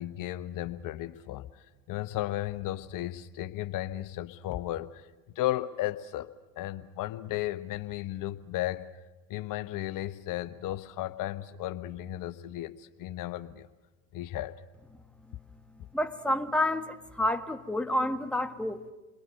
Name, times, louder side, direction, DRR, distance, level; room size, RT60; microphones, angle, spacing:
voice 1, 0.0-5.1 5.3-8.9 9.3-13.7 14.1-14.6, left 14 dB, 55° left, 11 dB, 1.0 m, -35 dB
voice 2, 15.9-18.8, left 1 dB, 5° left, 6 dB, 1.5 m, -29 dB
28.5 x 21.5 x 6.5 m, 1.2 s
hypercardioid pair, 70°, 39 cm